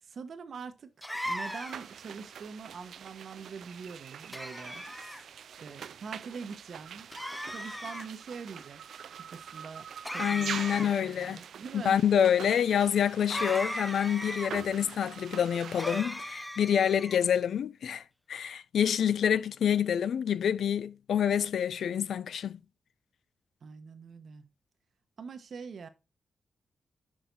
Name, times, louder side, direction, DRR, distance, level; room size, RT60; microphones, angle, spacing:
voice 1, 0.0-5.3 5.6-7.1 7.5-8.8 9.1-12.0 23.6-24.5 25.2-25.9, right 5 dB, 55° right, 1.0 m, -44 dB
sound 1, 1.0-2.0 4.3-5.2 7.1-8.1 10.0-11.1 13.3-14.5 15.8-17.2, equal, 5° left, 0.5 m, -37 dB
sound 2, 1.4-16.0, right 8 dB, 80° right, 0.4 m, -44 dB
voice 2, 10.2-11.4 11.7-18.0 18.3-22.6, left 8 dB, 80° left, 0.4 m, -27 dB
6.3 x 5.8 x 3.9 m
wide cardioid pair, 155°, 0 cm